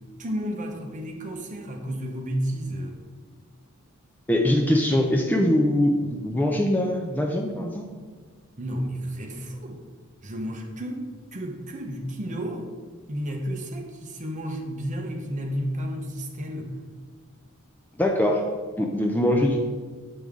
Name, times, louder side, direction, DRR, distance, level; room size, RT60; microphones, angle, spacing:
voice 1, 0.2-3.0 8.6-9.8 10.2-12.7 13.1-16.7, equal, 35° right, 2 dB, 0.8 m, -32 dB
voice 2, 4.3-7.9 18.0-18.4 18.8-19.6, left 1 dB, 10° left, 1 dB, 0.4 m, -22 dB
7.7 x 5.3 x 3.6 m, 1.5 s
head